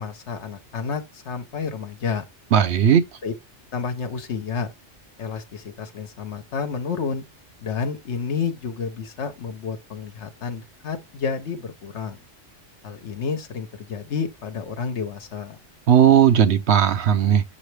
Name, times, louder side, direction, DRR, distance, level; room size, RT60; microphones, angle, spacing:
voice 1, 0.0-2.2 3.2-3.3 3.7-4.7 5.2-7.2 7.6-12.2 12.8-15.6, left 5 dB, 65° left, 1.3 m, -30 dB
voice 2, 2.5-3.0 15.9-17.4, right 9 dB, 65° right, 1.0 m, -16 dB
7.3 x 4.1 x 3.4 m
omnidirectional pair, 1.2 m